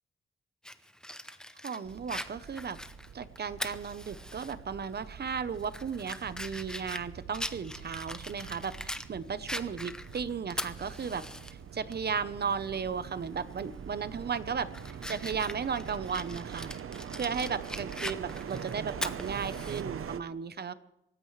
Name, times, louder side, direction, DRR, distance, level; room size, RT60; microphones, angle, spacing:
Fire, 0.6-4.5 4.9-5.0 5.5-9.1 9.5-11.5 11.9-12.0 13.5-13.8 14.2-19.8, left 1 dB, 5° left, 0.7 m, -41 dB
voice 1, 1.6-2.8 3.1-16.7 17.2-20.7, right 6 dB, 50° right, 13 dB, 0.9 m, -35 dB
sound 1, 1.9-20.2, right 7 dB, 85° right, 0.9 m, -44 dB
26.5 x 15.0 x 3.3 m, 0.87 s
wide cardioid pair, 175°, 21 cm